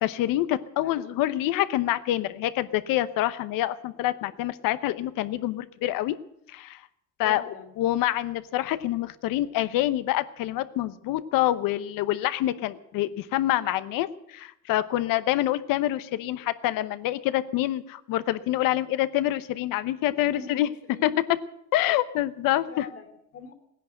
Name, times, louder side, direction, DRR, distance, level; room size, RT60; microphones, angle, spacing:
voice 1, 0.0-6.2 6.5-6.8 7.2-7.4 7.8-21.1 21.7-22.8, left 14 dB, 90° left, 14 dB, 0.9 m, -26 dB
voice 2, 0.8-1.2 7.2-7.7 20.3-21.2 22.7-23.5, left 5 dB, 45° left, 7 dB, 2.8 m, -43 dB
17.0 x 10.5 x 7.8 m, 0.77 s
cardioid pair, 135°, 32 cm